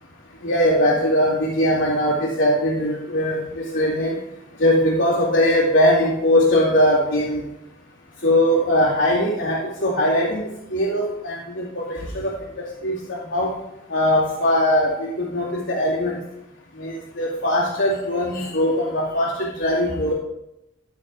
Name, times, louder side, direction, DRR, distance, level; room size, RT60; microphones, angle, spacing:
voice 1, 0.4-4.2 4.6-7.4 8.2-10.4 10.7-12.3 12.8-13.0 13.3-13.5 13.9-16.2 16.8-20.1, left 1 dB, 75° left, -8 dB, 2.4 m, -20 dB
13.0 x 6.7 x 3.7 m, 0.86 s
head